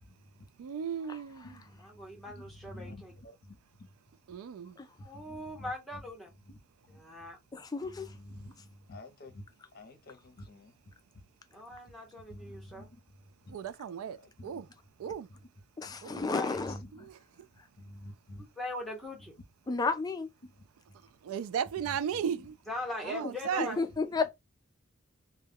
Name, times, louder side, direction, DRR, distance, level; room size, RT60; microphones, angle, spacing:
voice 1, 0.0-0.5 1.4-3.9 5.1-6.0 6.5-6.6 6.9-7.0 7.8-9.4 9.7-10.7 12.3-13.6 14.2-14.7 15.3-15.5 15.9-16.1 16.6-17.1 17.8-18.4 19.2-19.3 20.4-20.6 21.8-22.5 23.9-24.2, left 1 dB, 45° left, 0.7 m, -50 dB
voice 2, 0.6-1.5 4.3-4.7 13.5-14.2 14.4-14.6 15.0-15.3 16.0-16.1 21.2-22.5 23.1-23.7, right 8 dB, 85° right, 0.3 m, -35 dB
voice 3, 1.8-3.1 5.0-6.3 6.9-7.4 11.5-12.9 16.0-16.6 18.6-19.3 22.7-23.8, left 1 dB, ahead, 0.9 m, -40 dB
voice 4, 7.5-8.1 15.8-16.7 19.7-20.3 23.6-24.3, left 4 dB, 20° left, 0.3 m, -32 dB
2.2 x 2.1 x 3.4 m
head